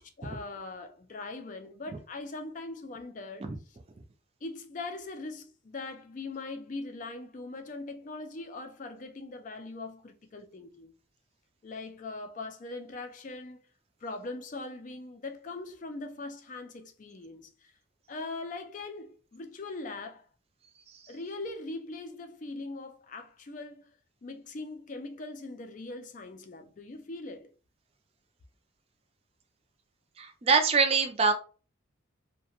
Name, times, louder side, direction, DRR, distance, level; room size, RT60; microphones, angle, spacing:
voice 1, 0.2-3.5 4.4-10.9 11.6-13.6 14.0-17.7 18.1-20.3 21.1-23.9 24.2-27.5, left 3 dB, 40° left, 0.4 m, -41 dB
voice 2, 30.2-31.3, right 4 dB, 30° right, 0.4 m, -23 dB
2.7 x 2.1 x 2.8 m
head